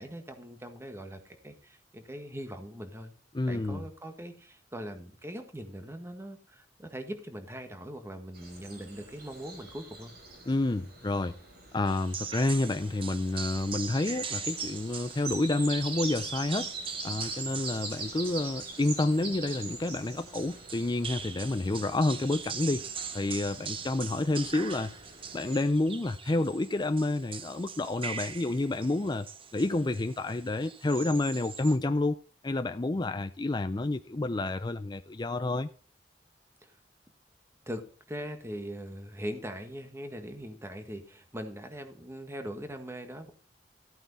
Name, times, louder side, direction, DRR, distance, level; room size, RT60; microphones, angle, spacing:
voice 1, 0.0-3.2 3.5-10.1 36.6-36.8 37.7-43.3, equal, 15° right, 1.6 m, -41 dB
voice 2, 3.3-3.8 10.5-11.3 11.7-16.7 17.0-22.8 23.1-24.9 25.3-29.3 29.5-32.2 32.4-35.7, left 2 dB, 25° left, 0.5 m, -29 dB
sound 1, 8.3-25.6, right 3 dB, 60° right, 5.0 m, -43 dB
sound 2, 11.9-31.8, right 6 dB, 30° right, 0.9 m, -42 dB
14.0 x 9.0 x 4.2 m
head